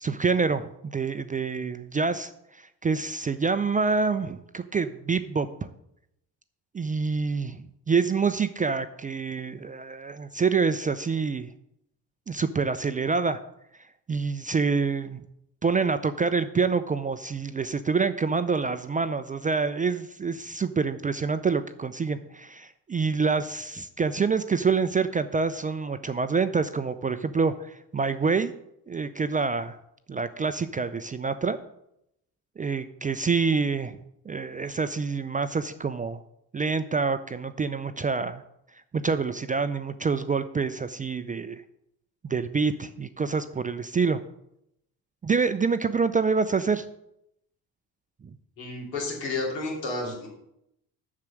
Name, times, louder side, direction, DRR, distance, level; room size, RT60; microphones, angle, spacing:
voice 1, 0.0-5.5 6.7-11.5 12.3-13.4 14.1-15.2 15.6-28.5 28.9-29.8 30.1-31.6 32.6-34.0 34.3-36.2 36.5-38.4 38.9-41.6 42.2-44.2 45.2-46.9, right 5 dB, 15° right, 11 dB, 0.4 m, -26 dB
voice 2, 48.6-50.3, left 2 dB, 80° left, -3 dB, 2.9 m, -31 dB
7.3 x 6.6 x 6.2 m, 0.79 s
figure-of-eight pair, 45°, 50 cm